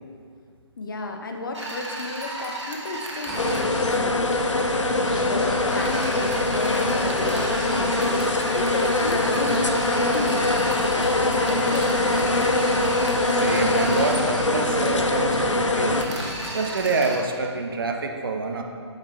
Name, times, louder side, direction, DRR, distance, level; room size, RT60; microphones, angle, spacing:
voice 1, 0.8-4.6 5.1-8.3 8.5-12.4, left 2 dB, 45° left, 3 dB, 0.8 m, -33 dB
sound 1, 1.5-3.7 5.7-14.2 15.9-17.2, right 1 dB, 70° right, 1.3 m, -34 dB
sound 2, 3.3-16.0, left 2 dB, 80° left, 0.6 m, -23 dB
sound 3, 3.3-16.5, equal, ahead, 0.5 m, -35 dB
voice 2, 13.3-16.0 16.5-18.6, right 3 dB, 50° right, 3 dB, 0.6 m, -27 dB
9.0 x 5.1 x 3.2 m, 2.1 s
figure-of-eight pair, 140°, 15 cm